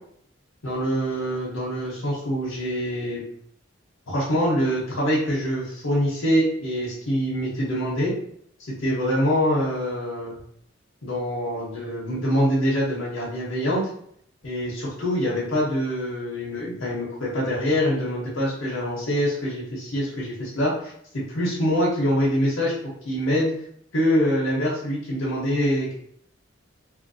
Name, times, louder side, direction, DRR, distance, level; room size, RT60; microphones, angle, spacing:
voice 1, 0.6-3.2 4.1-8.1 8.6-10.4 11.0-13.9 14.4-22.7 23.0-23.5 23.9-25.9, equal, 85° left, -6 dB, 0.9 m, -24 dB
3.1 x 2.5 x 2.6 m, 0.67 s
head